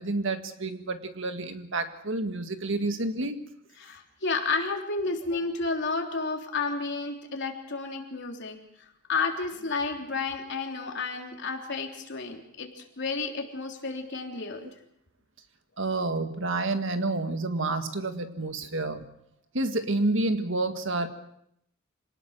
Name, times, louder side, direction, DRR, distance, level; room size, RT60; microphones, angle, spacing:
voice 1, 0.0-3.4 15.8-19.0 19.5-21.1, right 2 dB, 65° right, 8 dB, 1.8 m, -29 dB
voice 2, 3.8-14.7, left 4 dB, 60° left, 2 dB, 3.5 m, -31 dB
26.5 x 18.5 x 6.6 m, 0.74 s
head